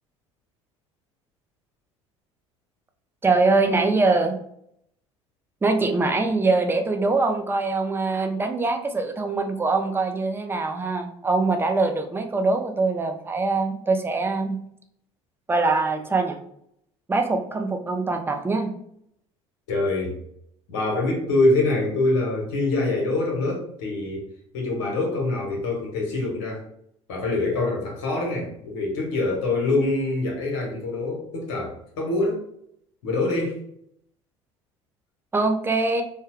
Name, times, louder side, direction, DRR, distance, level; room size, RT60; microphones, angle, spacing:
voice 1, 3.2-4.4 5.6-14.6 15.5-16.4 17.1-18.7 35.3-36.0, right 3 dB, 15° right, 5 dB, 0.5 m, -23 dB
voice 2, 19.7-20.2 20.7-24.2 24.5-26.6 27.1-32.4 33.0-33.6, left 2 dB, 70° left, -1 dB, 1.1 m, -25 dB
3.4 x 2.2 x 3.0 m, 0.70 s
hypercardioid pair, 65°, 16 cm